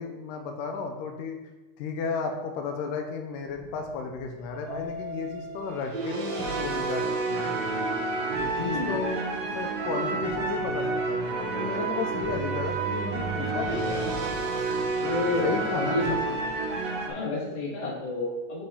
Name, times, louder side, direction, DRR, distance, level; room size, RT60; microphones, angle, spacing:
voice 1, 0.0-1.4 1.8-7.6 8.4-14.1 15.4-16.0 16.3-16.4, left 5 dB, 85° left, 4 dB, 2.3 m, -33 dB
sound 1, 3.5-4.7 5.5-17.1, right 3 dB, 65° right, 1.8 m, -30 dB
Keyboard (musical), 4.7-7.2, left 1 dB, 45° right, 2.7 m, -42 dB
voice 2, 8.6-8.9 15.0-16.2 17.1-18.6, left 2 dB, 20° left, -5 dB, 1.0 m, -30 dB
9.1 x 4.4 x 3.6 m, 1.2 s
omnidirectional pair, 3.8 m